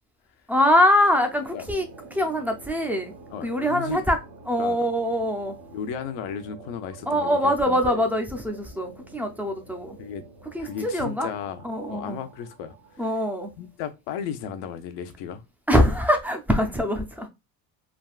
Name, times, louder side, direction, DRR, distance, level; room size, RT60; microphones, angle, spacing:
voice 1, 0.5-1.8 2.1-3.1 3.4-4.2 4.5-5.6 7.1-10.0 10.5-11.3 11.6-12.2 13.0-13.5 15.7-17.3, equal, 5° right, 0.4 m, -23 dB
sound 1, 0.7-13.8, right 3 dB, 75° right, 1.0 m, -48 dB
voice 2, 3.3-4.0 4.6-4.8 5.7-8.1 10.0-10.3 10.6-13.1 13.6-15.4, left 8 dB, 75° left, 0.7 m, -35 dB
3.5 x 2.3 x 2.3 m
cardioid pair, 110°, 43 cm